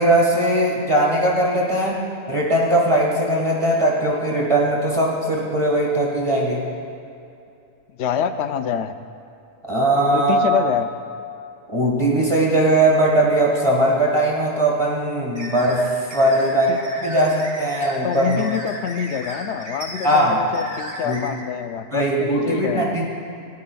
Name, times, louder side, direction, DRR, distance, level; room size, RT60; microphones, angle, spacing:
voice 1, 0.0-6.6 9.7-10.6 11.7-18.4 20.0-20.4 21.0-21.2 21.9-23.1, right 1 dB, 25° right, -4 dB, 1.7 m, -19 dB
voice 2, 8.0-9.0 10.1-10.9 16.7-16.8 18.0-23.0, left 8 dB, 65° left, 9 dB, 0.8 m, -26 dB
sound 1, 15.3-21.3, right 1 dB, 50° right, 2.5 m, -35 dB
18.0 x 12.0 x 2.4 m, 2.6 s
omnidirectional pair, 1.3 m